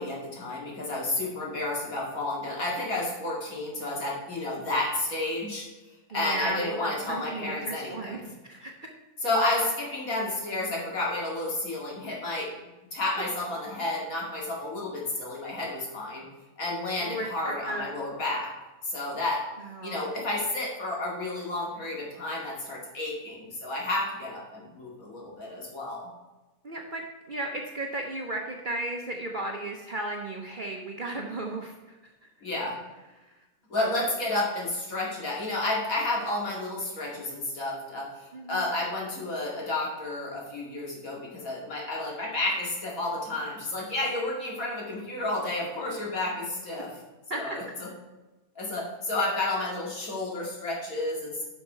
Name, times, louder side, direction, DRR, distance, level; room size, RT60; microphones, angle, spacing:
voice 1, 0.0-5.7 6.1-8.3 9.2-12.5 12.9-16.2 16.6-18.5 18.8-19.4 19.8-26.1 32.4-32.8 33.7-46.9 47.3-47.9 48.6-51.4, left 2 dB, 60° left, -3 dB, 2.6 m, -31 dB
voice 2, 6.1-8.7 17.0-18.0 19.6-20.0 26.6-32.0 32.2-32.3 33.3-33.4 38.3-38.6 47.3-47.6, right 2 dB, 40° right, 1 dB, 0.8 m, -35 dB
10.0 x 5.8 x 4.5 m, 1.1 s
omnidirectional pair, 1.6 m